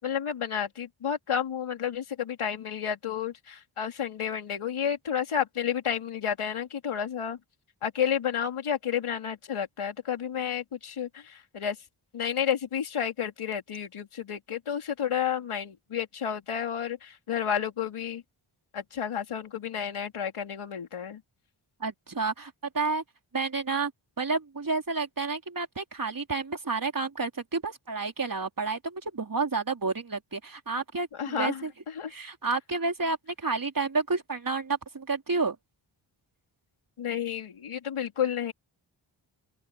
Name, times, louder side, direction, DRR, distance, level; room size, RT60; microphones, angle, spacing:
voice 1, 0.0-7.4 7.8-11.8 12.1-18.2 18.7-21.2 31.1-32.1 37.0-38.5, left 8 dB, 80° left, 4.1 m, -31 dB
voice 2, 21.8-23.0 23.3-23.9 24.2-31.7 32.1-35.6, right 4 dB, 40° right, 4.0 m, -30 dB
open air
cardioid pair, 50°, 49 cm